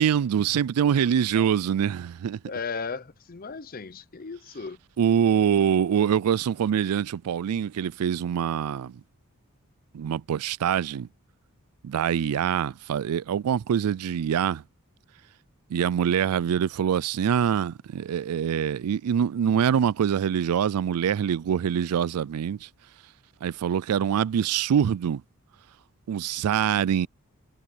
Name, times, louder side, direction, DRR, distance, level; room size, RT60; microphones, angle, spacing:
voice 1, 0.0-2.4 5.0-9.0 9.9-11.1 11.8-14.6 15.7-22.7 23.4-25.2 26.1-27.1, right 8 dB, 85° right, 0.4 m, -24 dB
voice 2, 2.4-4.8, left 5 dB, 40° left, 0.7 m, -36 dB
head